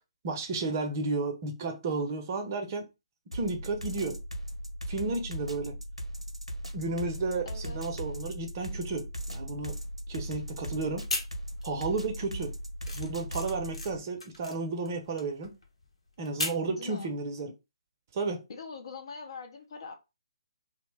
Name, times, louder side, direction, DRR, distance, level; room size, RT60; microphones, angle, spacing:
voice 1, 0.2-2.9 3.3-4.2 4.9-5.8 6.7-9.8 10.1-11.1 11.6-12.5 12.9-15.6 16.2-17.5 18.1-18.4, right 3 dB, 35° right, 0.5 m, -33 dB
sound 1, 3.3-14.0, equal, 85° right, 0.5 m, -38 dB
voice 2, 7.5-8.0 16.7-17.1 18.5-20.0, left 4 dB, 50° left, 0.6 m, -43 dB
sound 2, 10.9-11.9 12.2-16.7, left 2 dB, 75° left, 0.9 m, -37 dB
2.7 x 2.0 x 3.1 m
figure-of-eight pair, 135°, 3 cm